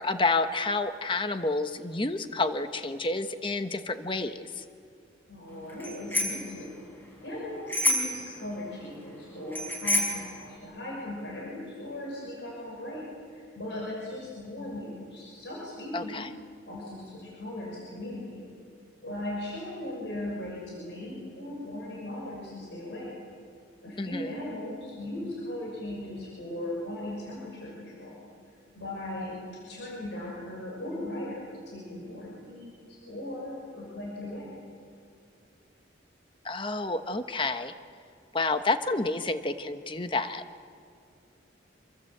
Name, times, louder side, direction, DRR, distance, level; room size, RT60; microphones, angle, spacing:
voice 1, 0.0-4.6 15.9-16.3 24.0-24.3 36.4-37.7 38.3-40.4, left 3 dB, 25° left, 9 dB, 1.1 m, -29 dB
voice 2, 5.3-16.2 16.7-18.5 19.0-23.1 23.8-28.3 28.7-29.4 29.7-34.5, left 1 dB, 65° left, -4 dB, 6.3 m, -38 dB
Bicycle bell, 5.8-6.5 7.7-8.3 9.5-10.3, left 1 dB, 10° left, 5.1 m, -27 dB
27.0 x 23.0 x 8.0 m, 2.3 s
head